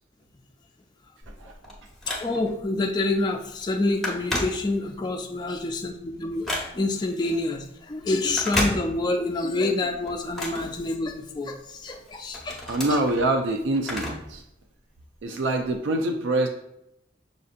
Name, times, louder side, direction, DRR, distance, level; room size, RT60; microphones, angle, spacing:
Telephone, 1.2-2.7 3.1-3.3 3.6-5.1 5.5-7.1 8.2-9.3 9.7-11.4 11.9-14.4 14.7-14.8 15.7-15.8, left 1 dB, ahead, 0.8 m, -32 dB
voice 1, 2.1-13.0, left 2 dB, 25° left, 3 dB, 0.3 m, -27 dB
voice 2, 12.7-14.4 15.2-16.5, right 2 dB, 90° right, 4 dB, 0.4 m, -25 dB
6.3 x 2.6 x 2.5 m, 0.79 s
head